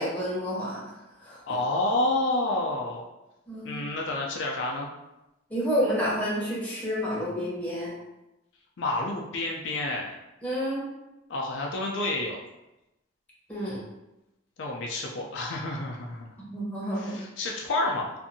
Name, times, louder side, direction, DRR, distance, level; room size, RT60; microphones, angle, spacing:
voice 1, 0.0-1.4 3.5-3.8 5.5-7.9 10.4-10.8 13.5-13.8 16.5-17.1, equal, 5° left, -7 dB, 0.8 m, -29 dB
voice 2, 1.5-3.1 3.6-4.9 8.8-10.2 11.3-12.4 14.6-16.4 17.0-18.1, left 2 dB, 65° left, -1 dB, 0.4 m, -29 dB
2.6 x 2.5 x 2.6 m, 0.94 s
head